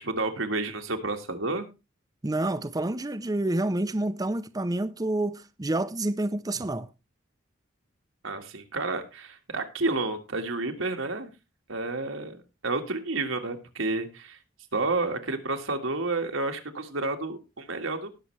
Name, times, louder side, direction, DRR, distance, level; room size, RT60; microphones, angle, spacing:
voice 1, 0.0-1.7 8.2-11.3 11.7-14.4 14.7-18.1, right 3 dB, 80° right, 1.8 m, -30 dB
voice 2, 2.2-6.9, right 1 dB, 20° right, 0.6 m, -28 dB
19.0 x 6.7 x 3.3 m
head